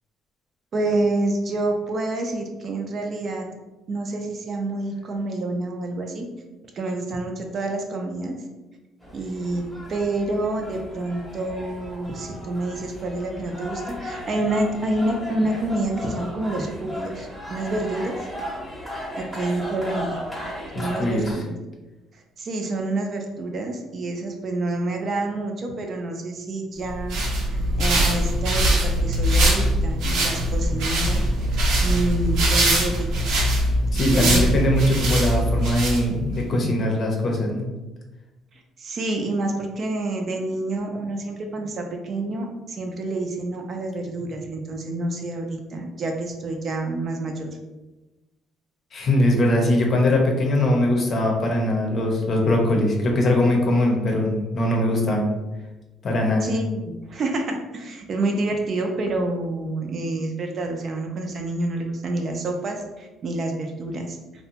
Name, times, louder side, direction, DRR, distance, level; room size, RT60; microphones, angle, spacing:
voice 1, 0.7-3.5 3.9-6.3 6.7-8.4 9.1-9.6 9.9-18.3 19.2-20.2 20.8-21.5 22.4-27.2 27.5-31.2 31.8-33.4 34.1-34.5 38.5-47.5 56.4-64.2, right 2 dB, 45° right, 3 dB, 0.4 m, -28 dB
sound 1, 9.0-21.3, left 1 dB, ahead, 0.9 m, -36 dB
voice 2, 20.7-21.4 33.9-37.7 48.9-55.3 56.0-56.5, left 1 dB, 45° left, 1 dB, 0.6 m, -21 dB
sound 2, 26.9-36.4, right 1 dB, 85° right, 0.7 m, -22 dB
2.5 x 2.1 x 2.8 m, 1.1 s
cardioid pair, 100°, 0 cm